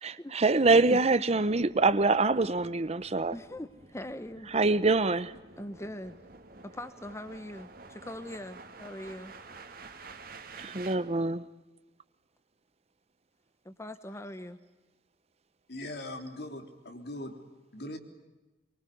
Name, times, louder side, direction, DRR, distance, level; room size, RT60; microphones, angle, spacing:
voice 1, 0.0-3.3 4.5-5.3 10.6-11.5, right 3 dB, 40° right, 0.9 m, -25 dB
sound 1, 1.5-11.0, right 4 dB, 55° right, 2.6 m, -50 dB
voice 2, 3.3-4.5 5.6-6.2 6.6-9.3 13.6-14.6, left 1 dB, 15° left, 1.0 m, -41 dB
voice 3, 15.7-17.4 17.7-18.0, left 1 dB, 65° left, 3.7 m, -40 dB
24.5 x 24.0 x 9.4 m
head